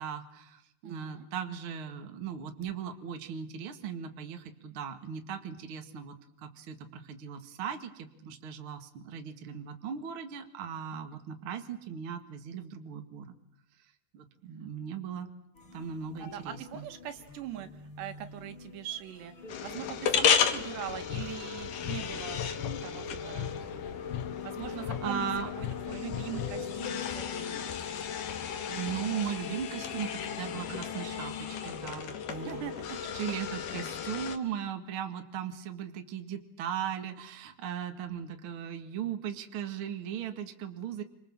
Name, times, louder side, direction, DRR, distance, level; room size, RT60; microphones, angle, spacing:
voice 1, 0.0-13.2 14.1-15.3 15.7-16.8 24.8-25.5 28.7-32.6 33.1-41.0, right 8 dB, 85° right, 6 dB, 1.1 m, -38 dB
voice 2, 0.8-1.3 16.2-23.5 24.4-25.3 25.6-27.6 32.3-33.1, right 11 dB, 65° right, 8 dB, 3.4 m, -42 dB
sound 1, 15.6-27.9, left 3 dB, 30° left, 2.8 m, -49 dB
sound 2, 19.5-34.4, left 8 dB, 60° left, 2.3 m, -34 dB
sound 3, 20.9-26.8, left 9 dB, 85° left, 3.9 m, -39 dB
29.5 x 26.5 x 7.4 m, 0.78 s
omnidirectional pair, 5.7 m